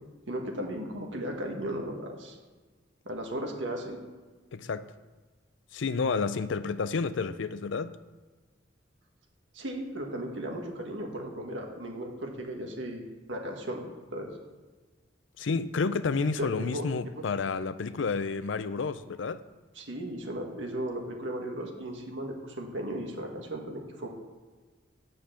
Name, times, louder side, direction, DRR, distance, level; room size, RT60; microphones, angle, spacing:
voice 1, 0.3-2.4 3.1-4.0 9.5-13.8 14.1-14.3 16.4-16.9 17.1-17.2 19.8-24.1, right 1 dB, 80° right, 1.8 m, -36 dB
voice 2, 4.5-4.9 5.7-8.0 15.4-19.4, left 4 dB, 85° left, 0.5 m, -30 dB
7.9 x 6.6 x 7.1 m
head